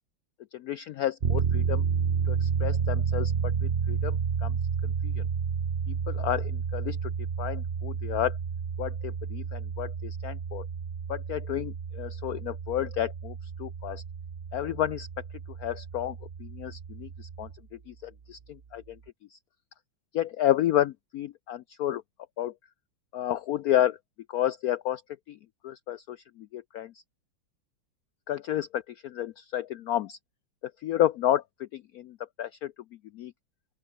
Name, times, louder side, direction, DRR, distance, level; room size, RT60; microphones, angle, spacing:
voice 1, 0.5-1.8 2.3-4.6 4.8-5.2 6.1-7.1 7.4-8.4 8.8-10.7 11.1-14.0 14.5-15.1 15.6-17.5 17.9-19.0 19.3-19.4 20.1-22.0 22.4-22.5 23.1-24.0 24.3-25.0 25.3-25.4 25.6-26.9 28.3-30.2 30.8-32.7 33.1-33.3, left 12 dB, 85° left, 0.8 m, -31 dB
sound 1, 1.2-17.6, right 6 dB, 40° right, 0.9 m, -31 dB
open air
omnidirectional pair, 2.2 m